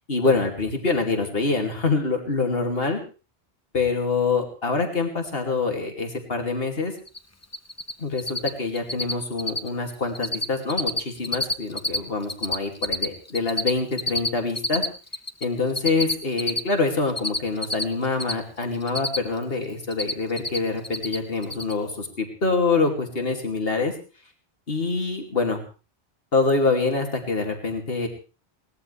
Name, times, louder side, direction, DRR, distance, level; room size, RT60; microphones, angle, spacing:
voice 1, 0.1-3.0 3.7-6.9 8.0-14.8 15.4-23.9 24.7-25.6 26.3-28.1, left 3 dB, 65° left, 4 dB, 2.9 m, -25 dB
Cricket, 7.1-7.2 7.4-7.9 8.2-8.5 8.7-9.1 9.4-9.7 9.9-10.4 10.7-12.0 12.2-15.4 15.8-18.3 18.6-19.4 19.7-20.6 20.8-21.2 21.4-21.7, left 2 dB, 15° left, 0.7 m, -26 dB
21.5 x 18.5 x 3.4 m, 0.34 s
omnidirectional pair, 1.1 m